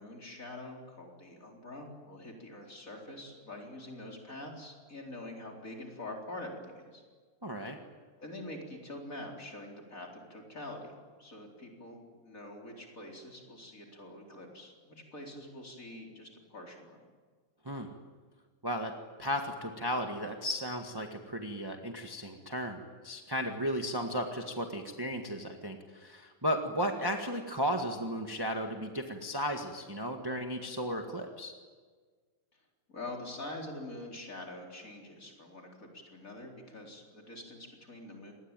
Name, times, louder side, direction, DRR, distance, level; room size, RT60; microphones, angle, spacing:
voice 1, 0.0-7.0 8.2-17.0 32.9-38.3, left 1 dB, 35° left, 0 dB, 4.6 m, -45 dB
voice 2, 7.4-7.8 17.6-17.9 18.6-18.9 19.2-31.5, equal, 10° right, 3 dB, 1.6 m, -35 dB
26.5 x 20.5 x 9.1 m, 1.5 s
omnidirectional pair, 2.4 m